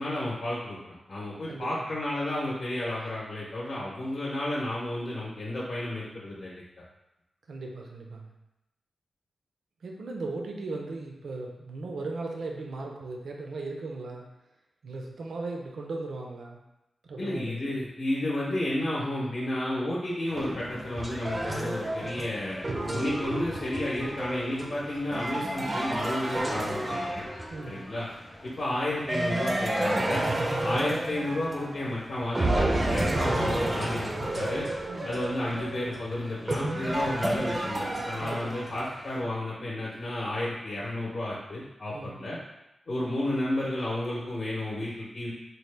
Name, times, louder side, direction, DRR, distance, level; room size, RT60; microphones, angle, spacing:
voice 1, 0.0-6.6 17.2-22.6 22.9-27.2 27.7-28.1 28.4-30.2 30.6-34.7 35.0-42.4 42.9-45.3, left 1 dB, 50° left, -6 dB, 0.7 m, -32 dB
voice 2, 1.5-1.9 7.5-8.3 9.8-14.3 14.8-16.6 17.0-17.7 27.5-27.8 34.9-35.1 38.2-38.6 41.9-42.2, right 3 dB, 80° right, 1 dB, 0.5 m, -37 dB
sound 1, 20.3-39.2, left 1 dB, 15° left, 0.6 m, -49 dB
sound 2, 20.4-27.8 29.1-31.9 32.3-38.8, right 1 dB, 25° right, 0.4 m, -30 dB
4.1 x 2.1 x 3.2 m, 0.92 s
wide cardioid pair, 125°, 0 cm